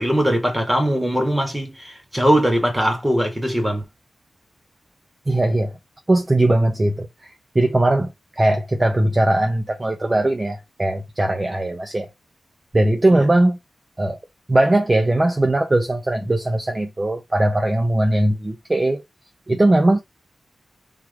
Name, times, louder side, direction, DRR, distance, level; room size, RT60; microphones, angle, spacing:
voice 1, 0.0-3.8 13.1-13.3, equal, 10° right, 1.8 m, -20 dB
voice 2, 5.3-5.7 6.1-8.1 8.4-12.1 12.7-13.6 14.0-14.2 14.5-19.0 19.5-20.0, right 1 dB, 25° right, 0.7 m, -19 dB
3.7 x 3.1 x 3.5 m
wide cardioid pair, 95°, 0 cm